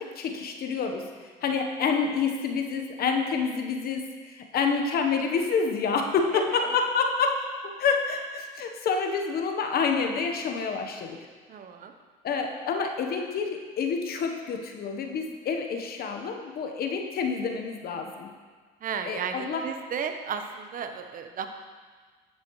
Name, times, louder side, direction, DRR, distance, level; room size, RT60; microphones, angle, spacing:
voice 1, 0.0-11.2 12.2-18.3 19.1-19.6, left 5 dB, 55° left, 4 dB, 1.0 m, -28 dB
voice 2, 11.5-11.9 18.8-21.5, right 7 dB, 50° right, 7 dB, 0.9 m, -34 dB
10.5 x 7.5 x 3.1 m, 1.5 s
supercardioid pair, 75°, 19 cm